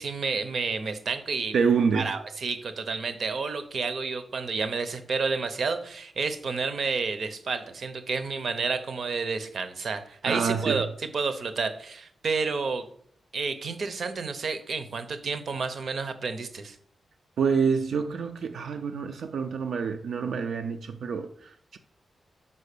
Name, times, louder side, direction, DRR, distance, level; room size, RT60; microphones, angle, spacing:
voice 1, 0.0-1.5 1.9-10.9 11.1-12.9 13.3-16.8, right 4 dB, 55° right, 0.7 m, -30 dB
voice 2, 1.5-2.1 10.3-10.8 17.4-21.8, right 6 dB, 85° right, 0.4 m, -27 dB
5.5 x 5.3 x 6.6 m
wide cardioid pair, 160°, 0 cm